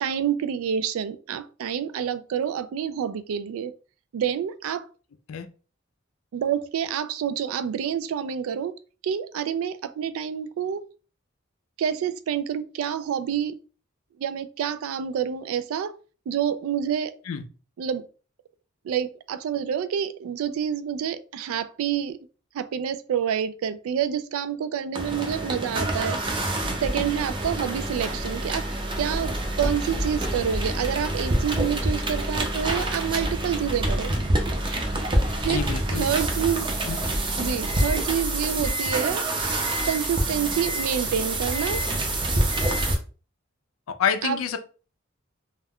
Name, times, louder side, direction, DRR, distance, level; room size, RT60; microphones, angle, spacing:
voice 1, 0.0-3.7 4.1-4.8 6.3-8.7 9.0-10.8 11.8-13.6 14.2-15.9 16.3-17.1 17.8-18.0 18.8-22.2 22.5-26.2 26.8-28.7 29.0-29.3 29.6-34.1 35.4-35.6 35.9-36.7 37.4-39.2 39.9-41.8 44.2-44.4, right 8 dB, 85° right, 0.3 m, -28 dB
sound 1, 24.9-43.0, right 1 dB, 25° right, 0.5 m, -27 dB
voice 2, 35.4-36.1 36.9-37.0 43.9-44.6, left 7 dB, 85° left, 0.4 m, -27 dB
2.3 x 2.2 x 3.5 m
head